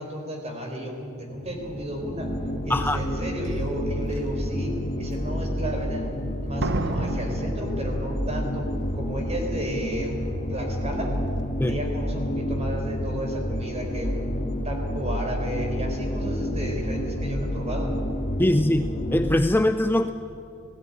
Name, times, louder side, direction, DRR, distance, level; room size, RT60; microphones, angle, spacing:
voice 1, 0.0-2.3 2.6-6.1 6.4-8.7 8.9-10.2 10.5-11.1 11.6-14.3 14.6-17.9, equal, 30° right, 2 dB, 4.3 m, -33 dB
sound 1, 1.4-19.4, equal, 35° left, 1.5 m, -29 dB
Slam, 3.4-3.5 4.2-4.5 6.6-8.5 8.7-8.8, right 2 dB, 55° right, 1.0 m, -31 dB
voice 2, 18.4-20.1, left 1 dB, 10° left, 9 dB, 0.5 m, -22 dB
17.5 x 16.5 x 9.7 m, 2.7 s
head